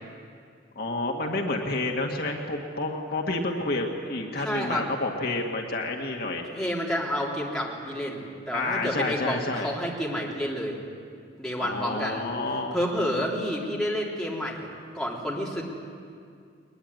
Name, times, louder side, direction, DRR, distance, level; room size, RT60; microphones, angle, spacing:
voice 1, 0.8-6.5 8.5-9.7 11.6-12.8, left 2 dB, 55° left, 1 dB, 1.9 m, -29 dB
voice 2, 4.3-4.9 6.5-10.8 11.4-12.2 12.7-15.6, equal, 5° left, -4 dB, 3.5 m, -30 dB
21.5 x 21.0 x 9.6 m, 2.3 s
head